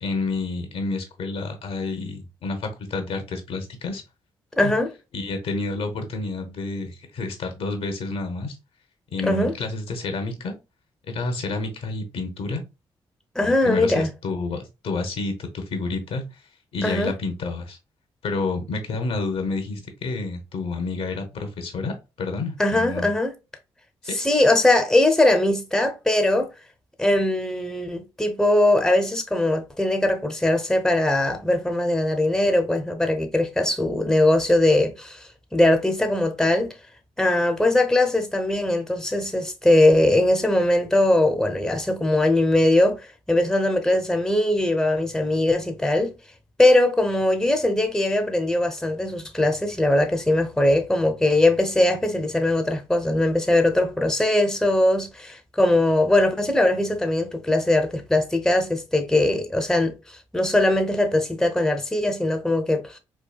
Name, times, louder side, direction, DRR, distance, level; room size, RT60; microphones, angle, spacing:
voice 1, 0.0-4.0 4.6-4.7 5.1-8.6 9.1-10.6 11.1-12.6 13.4-16.2 16.7-17.8 18.2-23.1 24.1-24.2, left 3 dB, 70° left, 0.9 m, -29 dB
voice 2, 4.6-4.9 9.2-9.5 13.3-14.1 16.8-17.1 22.6-23.3 24.1-26.5 27.0-36.7 37.2-43.0 43.3-46.1 46.6-63.0, left 1 dB, 5° left, 0.8 m, -21 dB
4.6 x 2.3 x 2.3 m
supercardioid pair, 50°, 11 cm